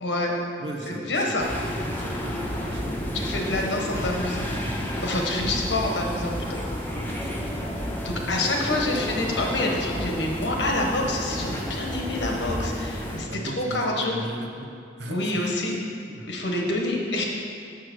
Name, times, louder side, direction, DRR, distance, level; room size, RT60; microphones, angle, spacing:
voice 1, 0.0-0.3 0.9-1.5 3.1-4.5 5.0-6.6 8.0-14.2 15.1-15.8 16.3-17.2, left 2 dB, 80° left, 0 dB, 1.3 m, -27 dB
voice 2, 0.6-1.4 1.7-2.9 5.4-5.6 6.9-7.5 8.2-8.4 8.7-8.8 13.3-14.7 15.0-15.5 16.1-16.3, right 1 dB, 80° right, 2 dB, 1.0 m, -37 dB
sound 1, 1.4-13.2, equal, 10° left, 0.9 m, -31 dB
6.6 x 6.3 x 6.2 m, 2.5 s
head